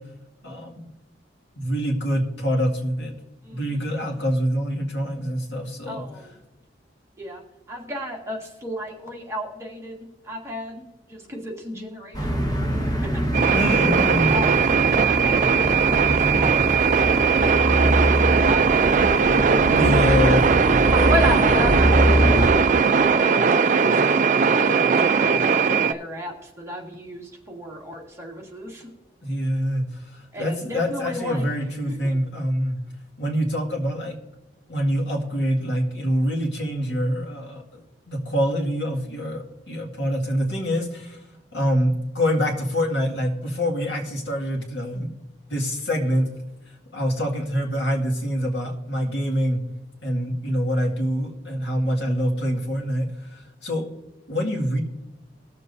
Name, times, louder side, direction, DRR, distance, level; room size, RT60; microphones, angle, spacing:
voice 1, 0.4-0.9 1.6-3.1 3.5-6.1 13.5-14.3 19.7-20.4 29.2-32.8 33.2-34.2 34.7-41.2 41.5-45.1 45.5-46.3 46.7-49.6 50.0-53.8 54.3-54.8, equal, 70° left, 1 dB, 2.2 m, -25 dB
voice 2, 3.4-3.9 5.9-6.4 7.2-7.4 7.7-13.5 13.8-20.5 20.9-28.9 30.3-31.5 31.9-32.2, equal, 15° right, -2 dB, 1.9 m, -33 dB
sound 1, 12.1-22.5, equal, 20° left, 1.4 m, -24 dB
sound 2, 13.3-25.9, right 5 dB, 45° right, 0.4 m, -19 dB
21.0 x 7.2 x 2.7 m, 1.1 s
head